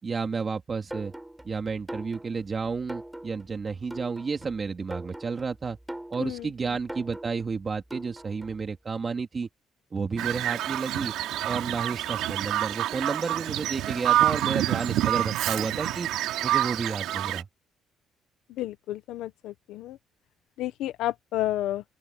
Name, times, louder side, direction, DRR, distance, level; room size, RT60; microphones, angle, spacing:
voice 1, 0.0-1.1 1.4-5.8 6.1-9.5 9.9-11.1 11.4-16.1 16.4-17.5, right 5 dB, 30° right, 3.4 m, -31 dB
sound 1, 0.9-8.7, right 1 dB, 5° right, 6.0 m, -42 dB
Bird vocalization bird call bird song, 10.2-17.4, right 13 dB, 85° right, 2.9 m, -27 dB
voice 2, 18.6-20.0 20.6-21.8, left 14 dB, 85° left, 1.1 m, -31 dB
open air
cardioid pair, 110°, 0 cm